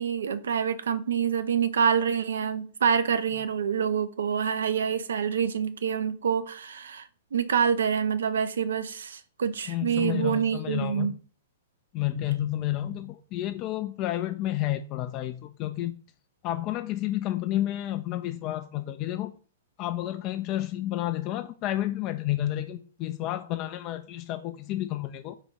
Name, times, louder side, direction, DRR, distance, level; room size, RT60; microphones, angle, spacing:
voice 1, 0.0-11.1, right 7 dB, 70° right, 0.4 m, -27 dB
voice 2, 9.7-11.1 11.9-16.0 16.4-19.3 19.8-25.3, left 14 dB, 35° left, 0.3 m, -30 dB
4.0 x 2.3 x 4.4 m
hypercardioid pair, 115°, 0 cm